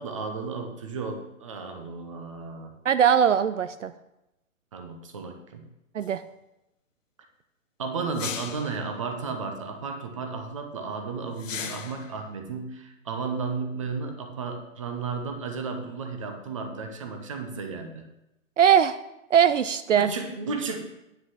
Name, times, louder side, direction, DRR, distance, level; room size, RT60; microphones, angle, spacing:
voice 1, 0.0-2.7 4.7-5.6 7.8-18.1 20.0-20.8, right 4 dB, 25° right, 5 dB, 0.8 m, -33 dB
voice 2, 2.8-3.9 5.9-6.2 18.6-19.0 19.3-20.1, right 8 dB, 65° right, 13 dB, 0.5 m, -20 dB
sound 1, 6.0-6.1 8.1-8.8 11.4-12.1, left 8 dB, 65° left, 0.9 m, -36 dB
9.7 x 5.8 x 5.8 m, 0.90 s
hypercardioid pair, 170°, 41 cm